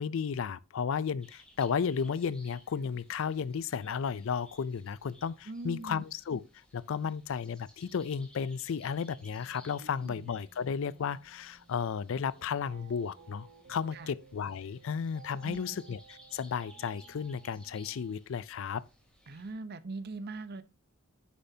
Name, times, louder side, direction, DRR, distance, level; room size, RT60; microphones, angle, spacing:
voice 1, 0.0-6.4 6.7-18.8, left 6 dB, 60° left, 0.4 m, -34 dB
sound 1, 1.2-19.5, left 1 dB, 5° left, 2.7 m, -60 dB
voice 2, 5.5-6.0 9.8-10.3 13.9-14.1 15.4-15.8 19.3-20.6, right 3 dB, 45° right, 0.7 m, -41 dB
sound 2, 8.7-18.1, right 5 dB, 80° right, 1.6 m, -58 dB
9.6 x 6.9 x 2.7 m
head